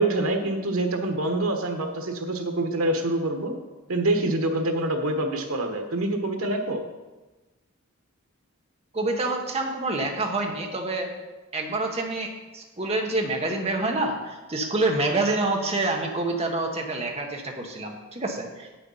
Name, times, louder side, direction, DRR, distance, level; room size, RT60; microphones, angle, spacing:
voice 1, 0.0-3.5 3.9-6.8, right 2 dB, 90° right, 5 dB, 1.3 m, -26 dB
voice 2, 8.9-11.1 11.5-18.7, right 2 dB, 30° right, 2 dB, 1.2 m, -27 dB
8.4 x 6.9 x 5.6 m, 1.2 s
head